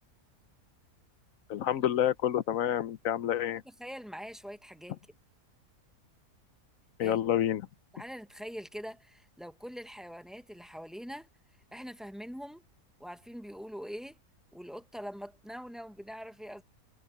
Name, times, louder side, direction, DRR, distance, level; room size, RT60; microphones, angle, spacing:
voice 1, 1.5-3.6 7.0-7.6, left 10 dB, 70° left, 1.1 m, -28 dB
voice 2, 3.6-5.0 7.0-7.2 7.9-11.3 11.7-12.6 13.0-14.2 14.5-16.6, equal, ahead, 0.8 m, -43 dB
omnidirectional pair, 1.6 m